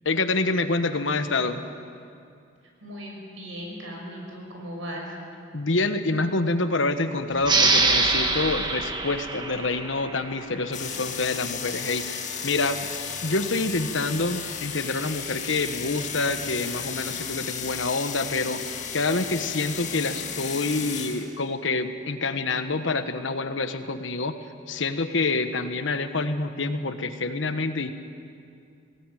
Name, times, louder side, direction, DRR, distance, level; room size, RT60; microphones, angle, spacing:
voice 1, 0.0-1.6 5.5-18.6 18.9-24.4 24.7-27.9, left 3 dB, 75° left, 9 dB, 1.2 m, -27 dB
voice 2, 2.8-5.2, equal, 85° right, 0 dB, 5.9 m, -37 dB
sound 1, 7.4-10.7, right 3 dB, 20° right, 1.3 m, -24 dB
sound 2, 10.7-21.3, left 7 dB, 35° left, 2.2 m, -34 dB
19.0 x 18.0 x 9.2 m, 2.4 s
head